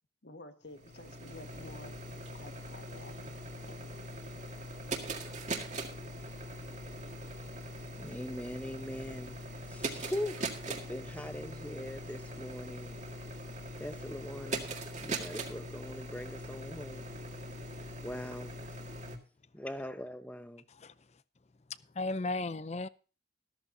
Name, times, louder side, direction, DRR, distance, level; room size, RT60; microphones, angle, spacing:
voice 1, 0.2-1.9 2.3-4.0, left 2 dB, 65° left, 1.6 m, -51 dB
sound 1, 0.7-19.2, right 1 dB, 40° right, 2.0 m, -41 dB
voice 2, 8.0-9.3 9.7-13.0 13.8-14.7 15.0-17.1 18.0-18.5 19.5-20.6, left 1 dB, 10° left, 0.9 m, -41 dB
voice 3, 21.9-22.9, left 2 dB, 35° left, 0.5 m, -35 dB
13.5 x 13.5 x 2.7 m
head